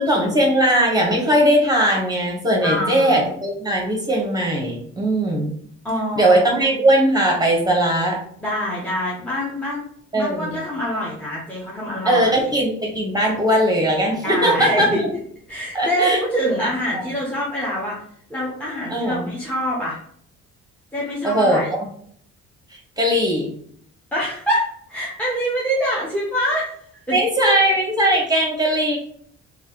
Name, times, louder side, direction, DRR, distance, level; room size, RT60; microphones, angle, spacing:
voice 1, 0.0-5.5 6.1-8.2 10.1-10.6 12.0-14.9 15.7-16.2 16.6-16.7 18.9-19.3 21.2-21.8 22.7-23.5 27.1-29.0, right 1 dB, 15° right, -1 dB, 1.1 m, -19 dB
voice 2, 2.6-3.3 5.8-6.7 8.4-9.8 10.1-12.5 14.2-15.0 15.5-18.0 18.3-20.0 20.9-21.7 24.1-26.7 27.1-27.2, equal, 5° left, -5 dB, 0.8 m, -25 dB
3.1 x 2.4 x 3.0 m, 0.63 s
cardioid pair, 90°, 30 cm